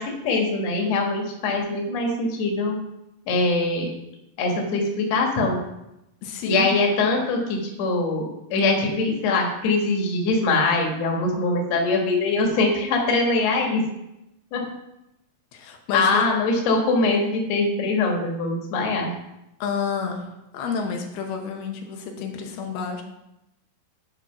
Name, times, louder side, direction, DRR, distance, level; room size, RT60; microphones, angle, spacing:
voice 1, 0.0-2.8 3.3-3.9 4.4-5.6 6.4-13.9 14.5-14.7 15.9-19.2, left 3 dB, 55° left, 0 dB, 2.4 m, -23 dB
voice 2, 6.2-6.8 15.5-16.2 19.6-23.0, left 5 dB, 85° left, 2 dB, 3.0 m, -30 dB
11.0 x 4.6 x 5.6 m, 0.88 s
omnidirectional pair, 4.4 m